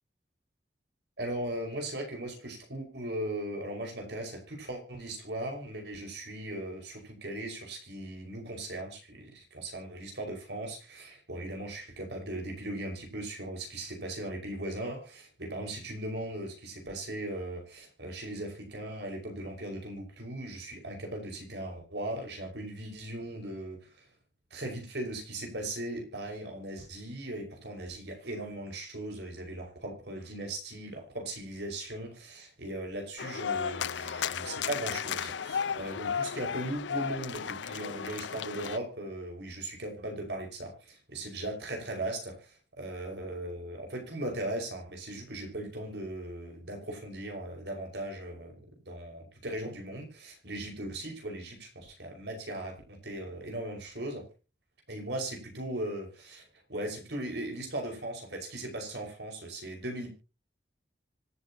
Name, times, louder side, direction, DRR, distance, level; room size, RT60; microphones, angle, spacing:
voice 1, 1.2-24.0 24.5-48.6 48.9-54.2 54.9-56.4 56.7-60.1, right 1 dB, 70° right, 2 dB, 5.5 m, -38 dB
sound 1, 33.2-38.8, left 7 dB, 85° left, 0.5 m, -34 dB
25.5 x 8.6 x 2.9 m, 0.32 s
head